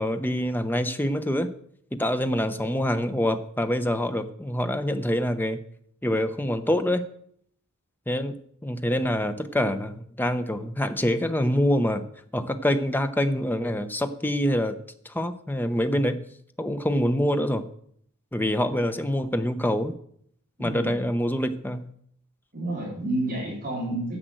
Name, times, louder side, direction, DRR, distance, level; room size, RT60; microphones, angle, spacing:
voice 1, 0.0-1.5 1.9-5.6 6.0-7.0 8.1-8.4 8.6-12.0 12.3-14.8 15.0-16.2 16.6-17.6 18.3-20.0 20.6-21.9, equal, 10° left, 9 dB, 0.7 m, -25 dB
voice 2, 20.6-20.9 22.5-24.2, right 1 dB, 40° right, -3 dB, 4.0 m, -30 dB
10.0 x 7.7 x 7.8 m, 0.66 s
head